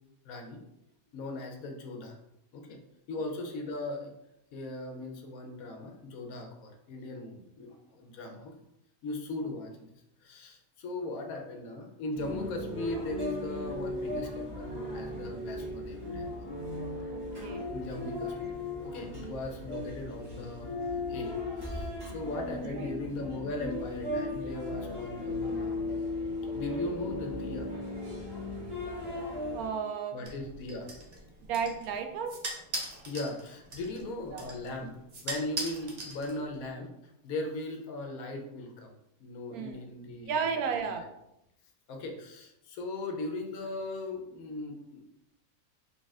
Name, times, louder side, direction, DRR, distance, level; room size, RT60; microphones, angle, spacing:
voice 1, 0.2-0.6 1.1-2.2 2.5-2.8 3.1-4.1 4.5-8.5 9.0-9.9 10.2-16.3 17.7-18.5 18.8-20.7 21.1-25.9 26.5-27.7 30.1-30.9 33.1-34.9 35.2-38.9 39.2-40.3 40.7-41.0 41.9-45.1, left 2 dB, 80° left, 3 dB, 1.1 m, -38 dB
sound 1, 12.1-29.7, left 2 dB, 20° right, 1.1 m, -37 dB
voice 2, 17.1-17.7 22.6-23.0 29.5-30.3 31.4-32.3 34.3-34.5 39.5-39.9 40.3-41.1, right 6 dB, 90° right, 6 dB, 1.1 m, -34 dB
sound 2, 30.2-36.7, right 2 dB, 45° right, 0.5 m, -41 dB
4.0 x 3.4 x 2.4 m, 0.85 s
omnidirectional pair, 1.5 m